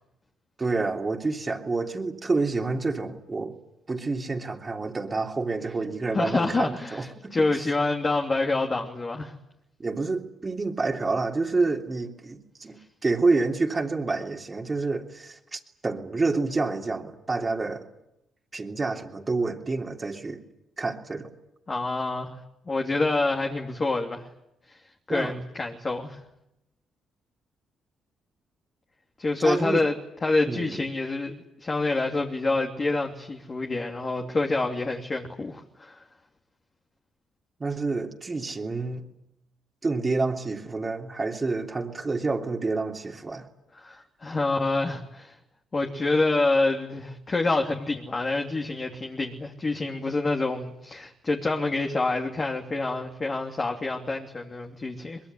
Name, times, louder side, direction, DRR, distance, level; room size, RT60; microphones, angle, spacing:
voice 1, 0.6-3.5 3.9-7.7 9.8-12.8 13.0-17.9 18.5-20.4 20.8-21.3 25.1-25.3 29.4-29.8 30.5-30.8 37.6-39.0 39.8-43.5, right 3 dB, 25° right, 2 dB, 3.2 m, -28 dB
voice 2, 6.1-9.3 21.7-22.3 22.7-24.3 24.7-24.8 25.1-26.2 29.2-36.0 43.8-45.4 45.7-55.2, left 3 dB, 30° left, 2 dB, 3.0 m, -27 dB
23.5 x 21.5 x 9.8 m, 0.85 s
cardioid pair, 90°, 0 cm